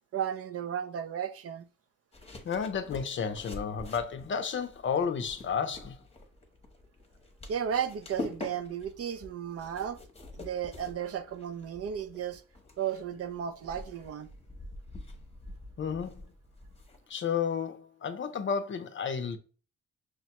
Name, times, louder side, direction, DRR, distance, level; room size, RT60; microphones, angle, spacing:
voice 1, 0.1-1.7 7.5-10.0 10.4-12.4 12.8-14.3, right 8 dB, 50° right, 0.5 m, -34 dB
sound 1, 2.1-17.1, left 2 dB, 20° left, 0.9 m, -46 dB
voice 2, 2.4-6.0 15.8-16.2 17.1-19.4, left 6 dB, 40° left, 0.6 m, -32 dB
6.3 x 2.1 x 2.9 m
cardioid pair, 90°, 30 cm